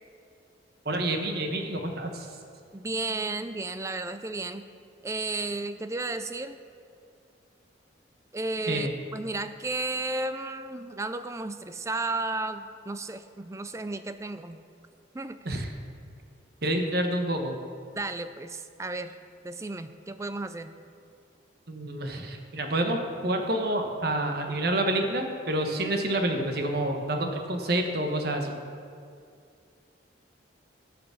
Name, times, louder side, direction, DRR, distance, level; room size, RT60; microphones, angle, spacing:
voice 1, 0.8-2.3 8.7-8.9 15.4-15.7 16.6-17.5 21.7-23.0 23.2-28.6, right 1 dB, 50° right, 4 dB, 1.1 m, -28 dB
voice 2, 2.7-4.7 5.0-6.6 8.3-14.6 15.1-15.6 18.0-19.2 19.4-20.7, right 2 dB, 15° right, 11 dB, 0.3 m, -33 dB
14.0 x 5.0 x 7.1 m, 2.3 s
head